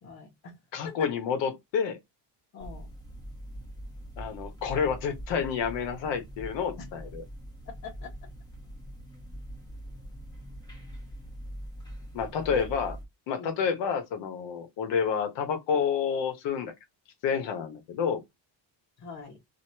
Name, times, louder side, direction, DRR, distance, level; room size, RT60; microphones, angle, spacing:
voice 1, 0.0-0.5 0.8-0.9 2.5-2.9 6.8-6.9 7.8-8.1 12.5-12.8 13.4-13.6 19.0-19.4, left 5 dB, 50° left, 1.4 m, -42 dB
voice 2, 0.7-2.0 4.2-7.2 12.1-12.9 13.3-16.7 17.2-18.2, left 6 dB, 80° left, 1.2 m, -29 dB
sound 1, 2.6-13.0, equal, 10° left, 1.2 m, -43 dB
3.0 x 2.8 x 2.8 m
cardioid pair, 170°, 43 cm